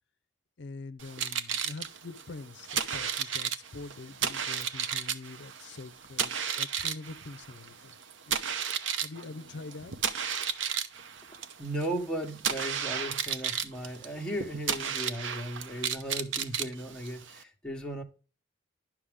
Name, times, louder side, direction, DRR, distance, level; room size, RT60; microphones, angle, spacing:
voice 1, 0.6-6.3 6.6-7.9 8.3-8.4 9.0-10.0, left 3 dB, 65° left, 0.5 m, -44 dB
sound 1, 1.0-17.4, right 7 dB, 80° right, 0.7 m, -33 dB
voice 2, 11.6-18.0, right 1 dB, 5° left, 1.1 m, -36 dB
11.5 x 6.0 x 3.5 m
head